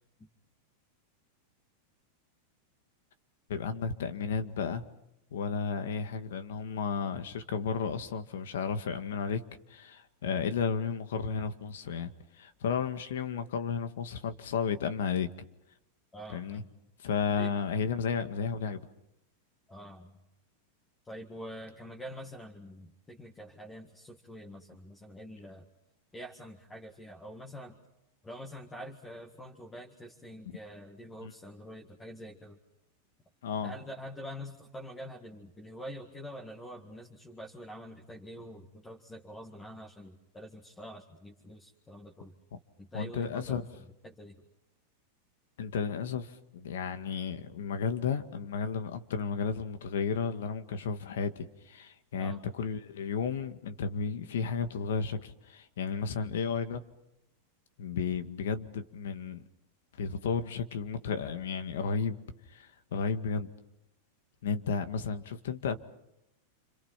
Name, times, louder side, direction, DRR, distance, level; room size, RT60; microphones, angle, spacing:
voice 1, 3.5-4.8 5.3-9.4 9.7-12.1 12.4-15.3 16.3-16.6 17.0-18.8 31.2-31.3 33.4-33.7 42.9-43.6 45.6-56.8 57.8-59.4 60.0-62.2 62.5-63.5 64.4-65.8, left 6 dB, 85° left, 9 dB, 1.9 m, -33 dB
voice 2, 16.1-16.7 17.4-17.5 19.7-20.2 21.0-25.6 26.1-27.8 28.2-32.6 33.6-42.3 42.8-43.6 44.0-44.4 52.2-52.4, equal, 10° left, 2 dB, 1.9 m, -46 dB
28.5 x 26.5 x 5.9 m, 0.89 s
supercardioid pair, 150°, 0 cm